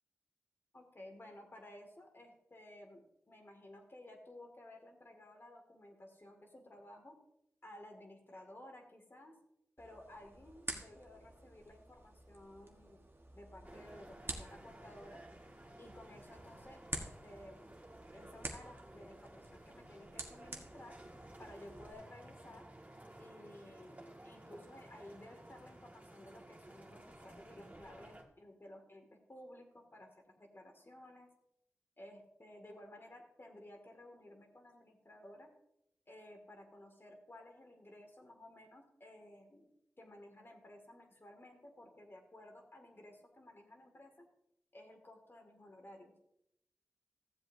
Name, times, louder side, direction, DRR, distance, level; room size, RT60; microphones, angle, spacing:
voice 1, 0.7-7.2 7.6-9.4 9.8-13.0 13.3-15.2 15.8-17.8 18.1-21.0 21.4-22.6 23.2-31.3 32.0-35.5 36.1-39.7 40.0-44.1 44.7-46.1, left 1 dB, 45° left, 3 dB, 2.1 m, -55 dB
sound 1, 9.8-21.9, right 2 dB, 45° right, 1.3 m, -49 dB
sound 2, 13.6-28.2, right 1 dB, 30° right, 1.9 m, -55 dB
14.5 x 7.6 x 2.7 m, 0.77 s
cardioid pair, 45°, 5 cm